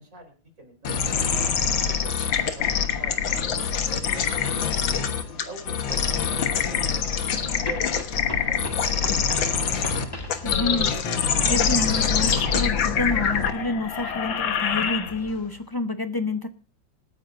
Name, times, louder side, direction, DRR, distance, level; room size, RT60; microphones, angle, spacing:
voice 1, 0.0-1.4 1.9-2.3 2.5-7.2 7.6-9.0 9.4-9.5, right 1 dB, 45° right, 4.7 m, -44 dB
sound 1, 0.8-15.4, left 7 dB, 90° left, 2.1 m, -25 dB
sound 2, 5.2-5.3 7.6-10.5, left 1 dB, 15° left, 1.6 m, -37 dB
voice 2, 10.3-16.5, left 2 dB, 35° left, 0.3 m, -29 dB
26.5 x 9.9 x 2.6 m
omnidirectional pair, 2.0 m